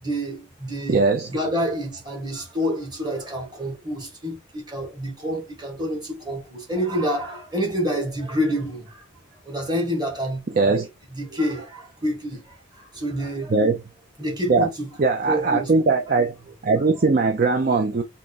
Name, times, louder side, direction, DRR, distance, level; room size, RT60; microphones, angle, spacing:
voice 1, 0.0-1.0 1.3-9.0 9.4-10.8 11.1-13.5 14.2-14.9 15.3-15.7, equal, 20° right, 1.5 m, -28 dB
voice 2, 0.9-1.3 10.5-10.9 13.5-13.8 14.5-14.7 15.0-16.3 16.6-18.0, right 3 dB, 45° right, 0.5 m, -20 dB
3.7 x 2.9 x 4.0 m
head